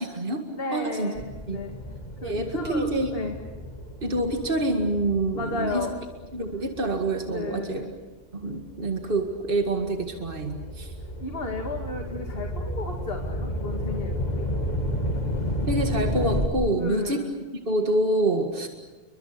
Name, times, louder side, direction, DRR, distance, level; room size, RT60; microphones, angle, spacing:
voice 1, 0.0-0.4 0.7-1.1 1.5-1.6 2.2-3.1 4.0-5.8 6.3-7.8 8.3-10.9 15.7-17.2 17.7-18.7, right 2 dB, 55° right, 4 dB, 2.3 m, -26 dB
voice 2, 0.5-1.8 2.2-3.4 5.3-5.9 6.5-6.6 7.3-7.9 11.2-14.5 16.8-17.3, left 2 dB, 65° left, 3 dB, 2.5 m, -33 dB
sound 1, 1.2-7.9 8.5-16.5, left 1 dB, 40° left, 2.7 m, -32 dB
29.5 x 23.5 x 6.8 m, 1.2 s
omnidirectional pair, 1.1 m